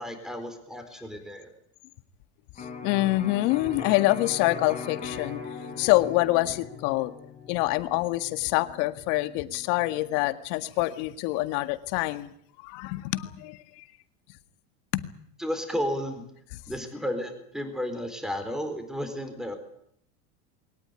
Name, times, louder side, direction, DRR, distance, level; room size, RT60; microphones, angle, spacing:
voice 1, 0.0-1.5 15.4-16.2 16.7-19.6, equal, ahead, 7 dB, 4.3 m, -33 dB
voice 2, 2.6-7.1 7.5-12.3 12.6-13.9 14.9-15.1, left 18 dB, 65° left, 10 dB, 1.9 m, -26 dB
Electric guitar, 2.6-10.3, left 5 dB, 25° left, 4.3 m, -41 dB
22.0 x 19.0 x 9.8 m, 0.70 s
supercardioid pair, 145°, 33 cm